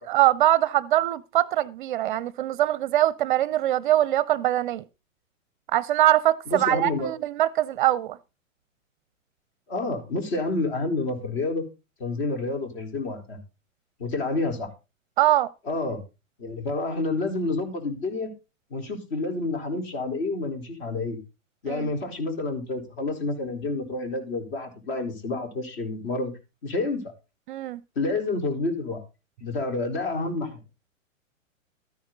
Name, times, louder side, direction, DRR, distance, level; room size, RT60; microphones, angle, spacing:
voice 1, 0.1-4.8 5.7-8.2 15.2-15.5 21.7-21.9 27.5-27.8, right 14 dB, 40° right, 0.5 m, -22 dB
voice 2, 6.5-7.1 9.7-11.6 12.0-13.4 14.0-14.7 15.7-16.0 16.4-18.3 18.7-21.2 21.6-26.3 26.6-27.1 28.0-29.0 29.4-30.6, left 3 dB, 50° left, 4.2 m, -29 dB
13.5 x 10.0 x 3.9 m
figure-of-eight pair, 110°, 40 cm